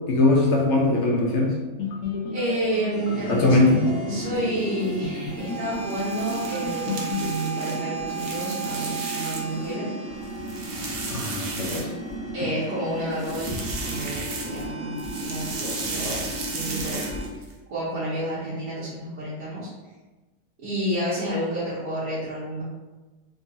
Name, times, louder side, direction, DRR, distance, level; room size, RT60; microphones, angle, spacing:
voice 1, 0.1-1.6 3.3-3.9 11.1-11.9 12.4-12.5, left 2 dB, 60° left, -2 dB, 0.8 m, -21 dB
sound 1, 1.8-7.4, left 4 dB, 80° left, 1.2 m, -33 dB
voice 2, 2.3-3.7 4.1-9.9 12.3-16.2 16.5-17.0 17.7-19.7 20.6-22.6, equal, 85° right, -11 dB, 1.5 m, -30 dB
sound 2, 2.9-17.3, right 3 dB, 40° right, 1.1 m, -34 dB
sound 3, 5.8-9.7 10.1-12.3 13.1-14.7 15.0-17.5, right 3 dB, 60° right, 0.6 m, -35 dB
3.7 x 2.8 x 2.6 m, 1.2 s
omnidirectional pair, 1.6 m